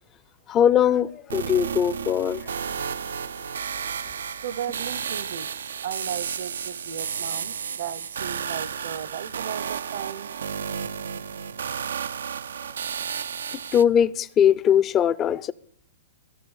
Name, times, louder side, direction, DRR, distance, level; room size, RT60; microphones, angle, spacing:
voice 1, 0.5-2.4 13.7-15.5, left 9 dB, 25° left, 0.5 m, -20 dB
sound 1, 1.3-13.8, right 7 dB, 90° right, 0.5 m, -32 dB
voice 2, 4.4-10.3, right 9 dB, 65° right, 0.8 m, -36 dB
15.5 x 6.7 x 8.2 m
hypercardioid pair, 140°, 0 cm